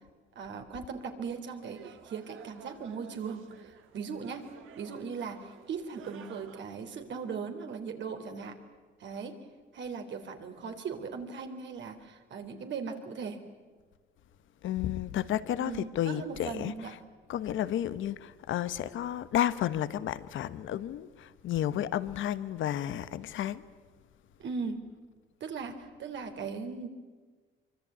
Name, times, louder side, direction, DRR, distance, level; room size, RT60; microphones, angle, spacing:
voice 1, 0.4-4.5 4.8-8.6 9.0-9.4 9.7-13.4 15.6-17.0 24.4-24.8 25.4-26.9, right 5 dB, 65° right, 3.7 m, -38 dB
sound 1, 1.5-6.6, right 8 dB, 85° right, 1.9 m, -52 dB
voice 2, 14.6-17.0 17.3-23.6, left 11 dB, 75° left, 1.2 m, -32 dB
25.0 x 24.5 x 9.4 m
cardioid pair, 90°, 20 cm